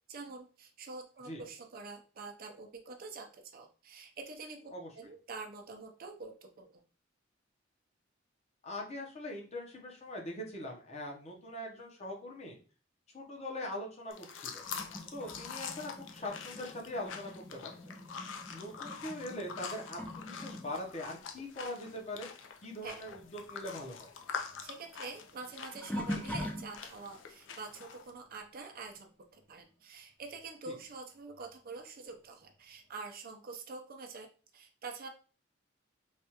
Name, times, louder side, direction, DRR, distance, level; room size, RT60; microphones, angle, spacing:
voice 1, 0.1-6.8 22.8-23.0 24.6-34.3 34.5-35.1, right 4 dB, 50° right, 4 dB, 0.5 m, -46 dB
voice 2, 8.6-12.6 13.1-14.6 15.1-17.9 18.5-22.3 22.6-24.1 30.7-30.8, left 1 dB, 35° left, 0 dB, 0.8 m, -42 dB
sound 1, 14.1-28.1, left 6 dB, 80° left, 0.4 m, -45 dB
sound 2, 14.6-22.6 22.8-27.2 27.8-28.1 30.4-30.5 31.3-31.4, left 1 dB, 5° left, 0.4 m, -44 dB
3.3 x 2.3 x 2.8 m, 0.37 s
head